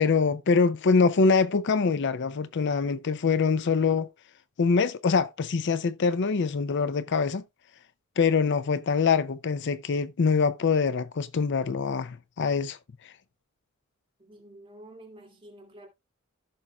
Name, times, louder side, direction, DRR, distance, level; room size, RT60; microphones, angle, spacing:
voice 1, 0.0-4.1 4.6-7.4 8.2-12.8 13.0-13.1, left 5 dB, 55° left, 0.5 m, -24 dB
voice 2, 14.2-15.9, right 1 dB, 25° right, 2.4 m, -49 dB
15.0 x 6.1 x 2.3 m
head